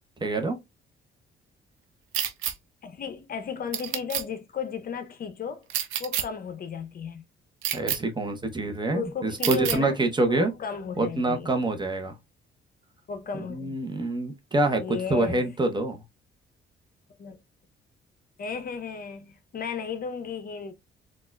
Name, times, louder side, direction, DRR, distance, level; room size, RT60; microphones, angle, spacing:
voice 1, 0.2-0.6 7.7-10.5 11.0-12.1 13.3-16.0, right 2 dB, 25° right, 0.8 m, -26 dB
sound 1, 2.1-2.5 3.7-4.2 5.7-6.2 7.6-8.0 9.4-9.8, right 11 dB, 90° right, 0.6 m, -28 dB
voice 2, 2.8-5.7 6.0-7.2 8.9-10.0 10.3-11.5 13.1-13.8 14.8-15.5 17.2-17.4 18.4-20.7, left 6 dB, 45° left, 0.6 m, -34 dB
4.1 x 2.4 x 2.2 m
cardioid pair, 90°, 20 cm